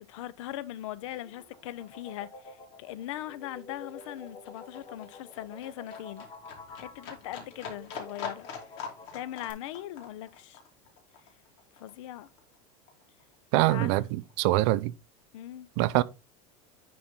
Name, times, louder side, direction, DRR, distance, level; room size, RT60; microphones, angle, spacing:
voice 1, 0.0-6.3 6.8-8.5 9.1-10.6 11.8-12.3 13.7-13.9 15.3-15.7, left 13 dB, 85° left, 0.7 m, -40 dB
sound 1, 1.1-9.5, left 3 dB, 30° left, 2.6 m, -48 dB
Livestock farm animals working animals, 1.3-1.4 1.6-12.6 12.9-13.9 14.2-14.3, left 6 dB, 60° left, 2.6 m, -45 dB
voice 2, 13.5-14.9 15.8-16.0, right 18 dB, 60° right, 0.5 m, -24 dB
10.5 x 4.3 x 3.7 m
supercardioid pair, 155°, 16 cm